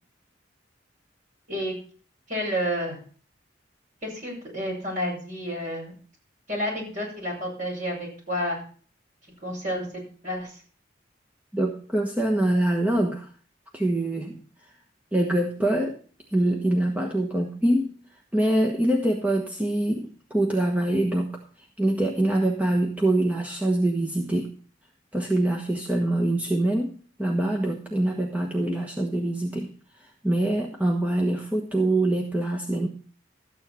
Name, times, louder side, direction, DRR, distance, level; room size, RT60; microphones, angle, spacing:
voice 1, 2.3-3.0 4.0-5.9 6.5-8.6 9.4-10.6, equal, 40° right, -2 dB, 6.9 m, -30 dB
voice 2, 11.5-13.2 13.7-14.4 15.1-16.0 16.3-17.9 18.3-21.4 21.8-24.5 25.1-29.7 30.2-32.9, right 1 dB, 10° right, 0 dB, 1.2 m, -24 dB
13.0 x 9.2 x 4.4 m, 0.42 s
head